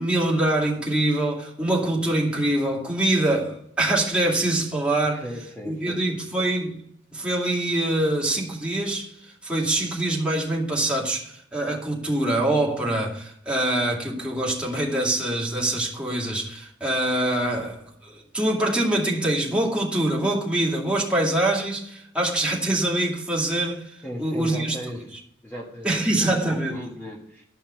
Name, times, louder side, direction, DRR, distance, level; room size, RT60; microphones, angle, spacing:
voice 1, 0.0-5.2 5.7-6.8 7.1-9.1 9.4-24.8 25.8-26.8, right 1 dB, 5° right, 2.5 m, -24 dB
voice 2, 5.0-6.0 24.0-25.2 25.4-27.4, equal, 10° left, 1.7 m, -37 dB
12.5 x 5.8 x 5.7 m
head